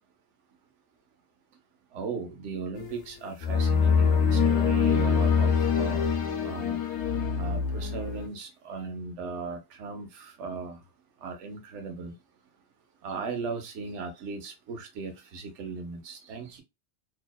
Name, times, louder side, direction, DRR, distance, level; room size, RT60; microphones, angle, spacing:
voice 1, 1.9-6.0 6.4-6.8 7.4-10.8 11.2-12.1 13.0-16.6, right 4 dB, 85° right, 1.0 m, -37 dB
sound 1, 2.7-3.0 3.4-8.3, left 6 dB, 75° left, 0.9 m, -24 dB
2.7 x 2.0 x 2.2 m
omnidirectional pair, 1.2 m